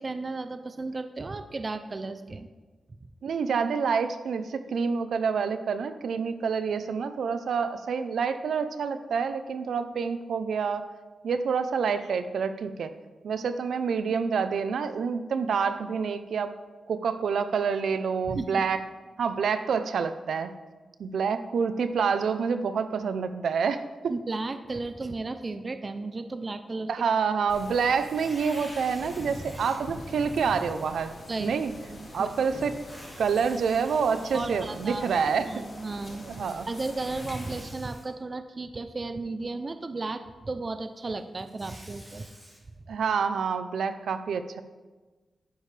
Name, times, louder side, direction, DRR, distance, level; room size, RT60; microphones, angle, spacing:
voice 1, 0.0-2.5 18.3-18.6 24.1-26.9 31.3-31.5 31.9-32.3 34.3-35.1 35.4-36.3 36.7-42.3, right 3 dB, 30° right, 9 dB, 0.5 m, -34 dB
voice 2, 3.2-10.9 11.2-12.9 13.2-16.5 16.9-18.8 19.2-20.5 21.0-23.8 26.9-31.1 31.4-31.7 32.1-32.8 33.2-35.5 36.2-36.7 42.9-44.6, right 6 dB, 80° right, 10 dB, 0.6 m, -27 dB
sound 1, 27.5-37.6, left 1 dB, 45° left, 2.2 m, -43 dB
Tearing, 28.1-29.7 30.4-30.5 32.7-34.9 36.7-38.0 41.2-42.6, equal, 5° right, 3.5 m, -49 dB
11.0 x 9.9 x 3.3 m, 1.3 s
wide cardioid pair, 175°, 0 cm